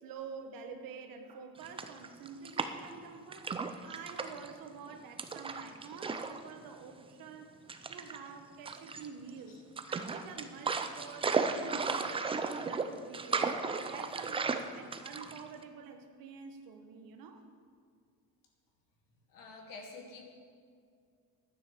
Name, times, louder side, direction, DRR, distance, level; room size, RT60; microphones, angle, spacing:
voice 1, 0.0-3.5 3.8-7.6 7.9-13.5 13.9-17.4, right 5 dB, 80° right, 6 dB, 1.4 m, -48 dB
sound 1, 1.6-3.0 3.3-4.5 5.2-6.4 6.7-6.8 7.7-8.2 8.6-9.3 9.8-15.6, right 4 dB, 15° right, 0.5 m, -35 dB
voice 2, 19.3-20.2, left 3 dB, 75° left, 1 dB, 2.6 m, -48 dB
11.5 x 9.6 x 7.0 m, 2.2 s
cardioid pair, 165°, 34 cm